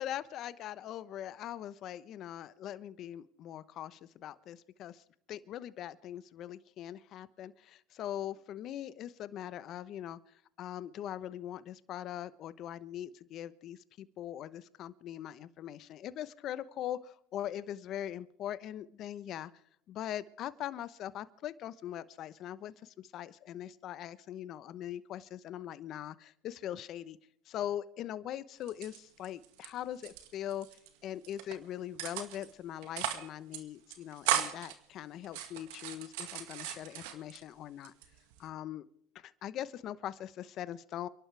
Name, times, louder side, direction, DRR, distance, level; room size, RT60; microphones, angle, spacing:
voice 1, 0.0-5.0 5.3-10.2 10.6-19.5 19.9-27.2 27.5-30.7 31.0-37.9 38.4-38.8 39.1-41.1, left 11 dB, 50° left, 15 dB, 1.0 m, -41 dB
sound 1, 28.6-29.7 29.9-30.9 31.2-31.6 32.0-32.5 32.8-33.3 33.5-33.6 33.9-34.7 35.2-37.4 37.8-38.5, right 10 dB, 75° right, 2.0 m, -36 dB
29.5 x 11.5 x 3.5 m, 0.70 s
supercardioid pair, 100°, 0 cm